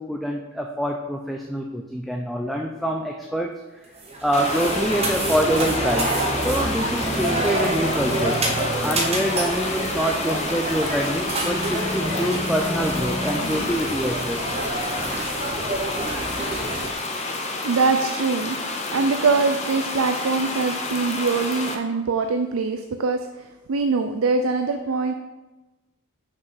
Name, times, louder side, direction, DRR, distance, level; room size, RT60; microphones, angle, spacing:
voice 1, 0.0-3.5 4.2-6.1 6.4-8.4 8.7-14.5 17.3-17.6, equal, ahead, 1 dB, 0.4 m, -26 dB
sound 1, 4.0-16.9, right 1 dB, 25° right, 1.1 m, -27 dB
sound 2, 4.3-21.7, left 3 dB, 30° left, 0.7 m, -30 dB
sound 3, 11.4-13.6, left 2 dB, 80° left, 2.1 m, -32 dB
voice 2, 17.6-25.1, right 4 dB, 70° right, 6 dB, 0.4 m, -23 dB
6.1 x 5.2 x 5.8 m, 1.1 s
head